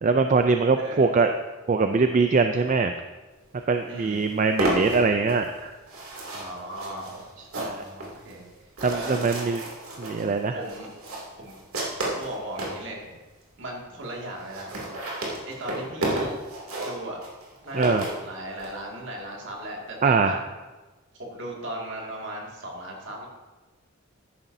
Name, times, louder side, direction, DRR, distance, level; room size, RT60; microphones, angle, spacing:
voice 1, 0.0-1.3 1.7-2.9 3.7-5.7 7.6-7.8 8.8-9.6 10.0-10.6 17.7-18.1 20.0-20.4, right 4 dB, 35° right, 7 dB, 0.3 m, -22 dB
voice 2, 0.7-1.1 3.9-4.2 6.3-7.2 7.5-8.5 8.9-9.4 10.5-10.9 11.4-11.6 12.0-13.1 13.6-14.8 15.5-16.3 16.8-17.2 17.6-20.4 21.2-23.3, right 1 dB, 60° right, -2 dB, 2.2 m, -37 dB
sound 1, 3.6-3.7 4.0-12.8 13.4-13.5 13.7-13.8 14.0-14.1 14.3-18.7, right 1 dB, 80° right, 2.7 m, -32 dB
13.0 x 10.0 x 2.7 m, 1.2 s
head